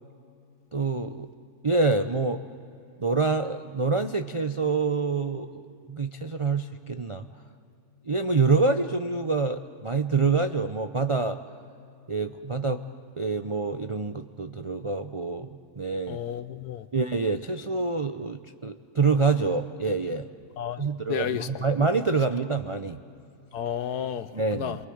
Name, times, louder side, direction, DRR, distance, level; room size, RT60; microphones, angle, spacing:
voice 1, 0.7-1.3 1.6-2.4 3.0-7.3 8.0-11.4 12.1-12.8 13.2-15.5 15.8-16.2 16.9-20.3 20.8-23.0 24.3-24.8, right 4 dB, 50° right, 6 dB, 0.3 m, -26 dB
voice 2, 16.1-16.8 20.6-20.8 21.1-21.5 23.5-24.3 24.6-24.8, left 9 dB, 80° left, 12 dB, 1.4 m, -31 dB
28.5 x 23.0 x 7.9 m, 2.7 s
omnidirectional pair, 1.7 m